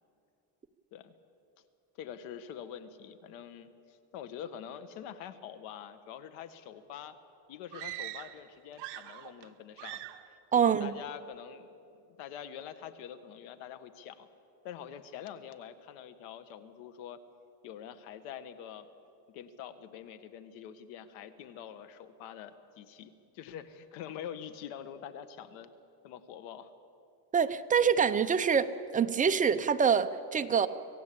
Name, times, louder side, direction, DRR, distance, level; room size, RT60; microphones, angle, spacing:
voice 1, 2.0-7.1 7.5-10.1 10.5-14.3 14.6-17.2 17.6-18.9 19.3-25.7 26.0-26.7, left 9 dB, 75° left, 11 dB, 1.7 m, -45 dB
sound 1, 7.7-8.4 8.7-9.5 9.8-10.3, right 15 dB, 55° right, 1.2 m, -42 dB
voice 2, 10.5-10.9 27.3-30.7, right 7 dB, 15° right, 9 dB, 0.5 m, -26 dB
25.5 x 17.0 x 8.6 m, 2.7 s
cardioid pair, 150°, 48 cm